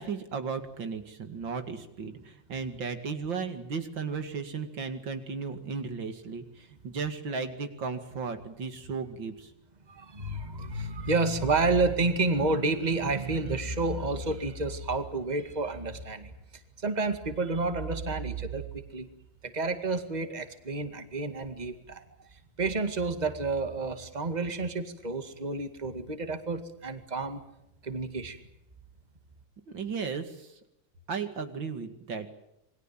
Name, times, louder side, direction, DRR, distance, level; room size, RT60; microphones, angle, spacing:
voice 1, 0.0-9.5 29.7-30.6 31.1-32.3, right 5 dB, 80° right, 8 dB, 2.9 m, -35 dB
voice 2, 9.9-16.3 16.8-19.1 19.4-22.0 22.3-27.4 27.8-28.4, right 3 dB, 20° right, 8 dB, 2.1 m, -30 dB
27.5 x 21.5 x 7.6 m, 0.84 s
omnidirectional pair, 2.0 m